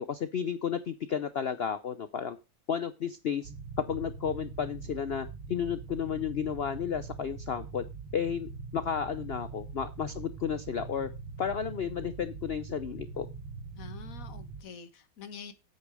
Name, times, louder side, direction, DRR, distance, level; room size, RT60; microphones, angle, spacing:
voice 1, 0.0-2.4 2.7-3.5 3.9-7.8 8.1-11.1 11.4-13.3, left 7 dB, 80° left, 12 dB, 0.5 m, -32 dB
sound 1, 3.4-14.6, right 4 dB, 85° right, 1.8 m, -43 dB
voice 2, 13.7-15.5, left 6 dB, 50° left, 10 dB, 1.5 m, -46 dB
8.9 x 8.4 x 4.7 m, 0.29 s
omnidirectional pair, 1.9 m